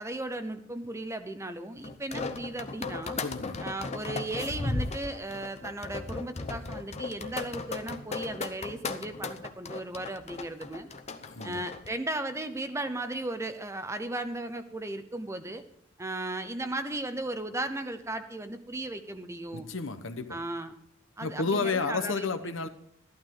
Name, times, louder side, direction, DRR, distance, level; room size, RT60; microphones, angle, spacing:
voice 1, 0.0-3.2 3.6-10.9 11.4-15.6 16.0-19.7 20.3-20.7 21.2-22.7, right 2 dB, 15° right, 9 dB, 0.8 m, -36 dB
sound 1, 1.8-11.9, left 3 dB, 30° left, 0.8 m, -36 dB
voice 2, 3.2-3.6 11.2-11.6 19.5-20.4 21.2-22.7, left 4 dB, 65° left, 9 dB, 1.1 m, -31 dB
14.0 x 12.0 x 3.9 m, 0.71 s
head